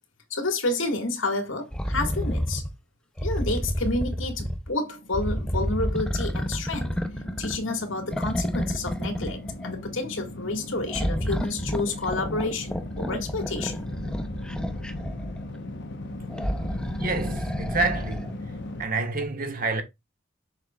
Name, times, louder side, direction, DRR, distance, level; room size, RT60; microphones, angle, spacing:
voice 1, 0.3-2.6 3.2-7.0 7.4-13.9, left 2 dB, 85° left, 2.0 m, -30 dB
sound 1, 1.7-2.7 3.2-4.7 5.1-7.7 8.1-9.7 10.9-15.4 16.3-18.3 19.2-19.3, equal, 5° left, 0.7 m, -30 dB
sound 2, 4.8-18.9, left 1 dB, 60° left, 1.1 m, -38 dB
voice 2, 17.0-18.5 18.8-19.8, right 3 dB, 45° right, 1.5 m, -28 dB
7.2 x 6.5 x 2.4 m
head